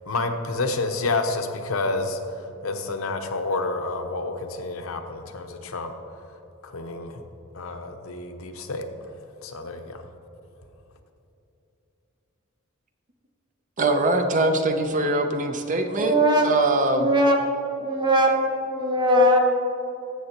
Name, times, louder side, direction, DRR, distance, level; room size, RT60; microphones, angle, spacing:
voice 1, 0.1-2.2 2.6-5.9 6.6-7.2 7.5-8.9 9.4-10.1, left 3 dB, 75° left, 6 dB, 0.8 m, -29 dB
voice 2, 13.8-16.2 16.4-17.1, right 2 dB, 40° right, 6 dB, 0.6 m, -22 dB
voice 3, 16.0-16.5 16.9-17.5 17.8-19.4, equal, 20° right, 1 dB, 1.1 m, -20 dB
14.5 x 6.7 x 2.9 m, 2.9 s
head